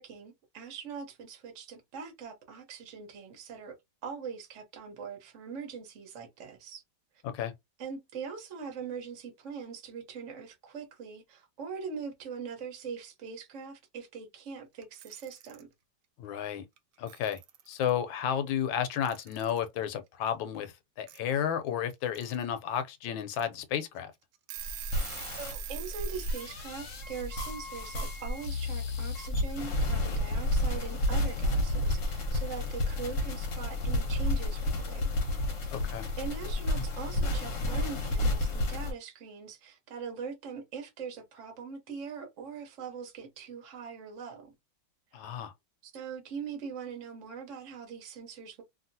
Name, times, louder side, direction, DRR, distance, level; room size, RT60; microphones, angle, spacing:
voice 1, 0.0-3.8 4.0-6.8 7.8-15.7 25.3-35.2 36.2-44.5 45.8-48.6, right 6 dB, 50° right, 1.0 m, -42 dB
Alarm / Clock, 14.8-15.6 16.8-16.9 17.1-17.9 19.0-19.6 21.1-21.2 21.9-22.4 22.8-22.9 23.3-23.4 24.0-24.1 24.3-26.5, right 13 dB, 75° right, 1.0 m, -44 dB
voice 2, 16.2-16.6 17.0-17.4 17.7-24.1 35.7-36.0 45.1-45.5, left 9 dB, 85° left, 1.4 m, -32 dB
sound 1, 24.6-38.9, left 1 dB, 55° left, 1.0 m, -31 dB
2.9 x 2.7 x 2.7 m
omnidirectional pair, 2.1 m